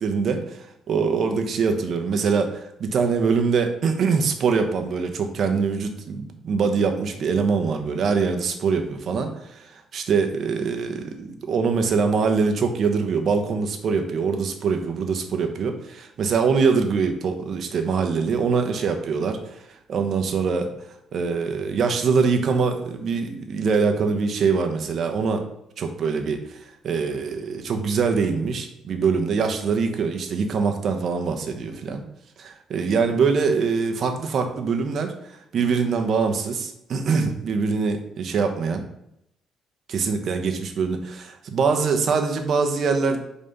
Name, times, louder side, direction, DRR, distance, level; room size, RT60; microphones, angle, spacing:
voice 1, 0.0-19.4 19.9-20.7 21.1-25.4 25.8-26.6 26.8-32.0 32.4-35.1 35.5-38.8 39.9-43.2, right 5 dB, 55° right, 5 dB, 1.0 m, -23 dB
5.4 x 4.2 x 5.4 m, 0.80 s
cardioid pair, 90°, 0 cm